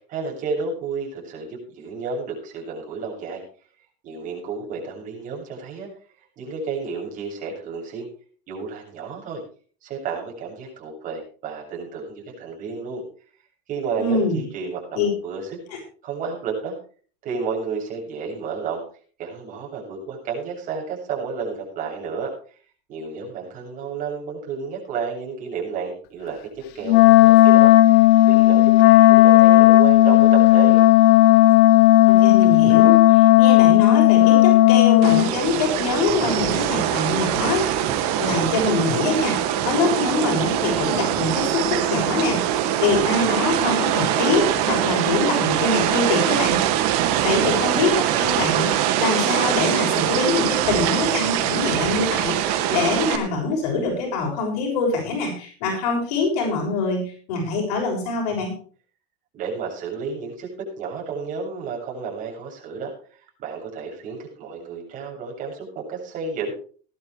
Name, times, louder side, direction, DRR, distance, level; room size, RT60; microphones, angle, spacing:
voice 1, 0.1-3.4 4.0-5.9 6.4-8.1 8.5-9.4 9.8-13.0 13.7-15.6 16.0-16.7 17.2-18.8 19.2-22.3 22.9-28.0 28.3-30.8 59.3-66.5, right 5 dB, 40° right, -1 dB, 7.6 m, -31 dB
voice 2, 14.0-14.4 14.9-15.1 32.1-37.8 38.1-46.6 47.2-58.5, left 3 dB, 85° left, 1 dB, 6.7 m, -24 dB
Wind instrument woodwind instrument, 26.9-35.3, left 16 dB, 55° left, 1.0 m, -13 dB
sound 1, 35.0-53.2, right 11 dB, 80° right, 2.3 m, -23 dB
19.0 x 12.0 x 3.4 m, 0.41 s
cardioid pair, 145°, 20 cm